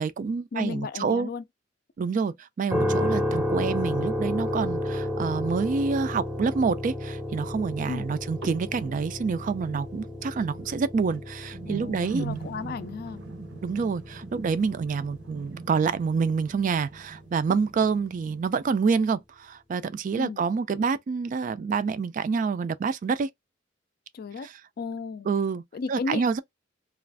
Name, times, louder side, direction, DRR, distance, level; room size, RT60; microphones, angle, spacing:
voice 1, 0.0-1.3 2.0-12.3 13.6-23.3 24.4-24.6 25.3-25.6 25.9-26.4, right 5 dB, 45° right, 0.3 m, -27 dB
voice 2, 0.5-1.4 7.8-8.1 11.7-13.2 20.2-20.4 24.1-24.5 24.8-25.3 25.7-26.4, left 4 dB, 55° left, 0.4 m, -34 dB
sound 1, 2.7-16.7, left 1 dB, 5° right, 0.6 m, -32 dB
sound 2, 2.8-18.8, right 4 dB, 75° right, 0.8 m, -44 dB
2.4 x 2.4 x 3.3 m
head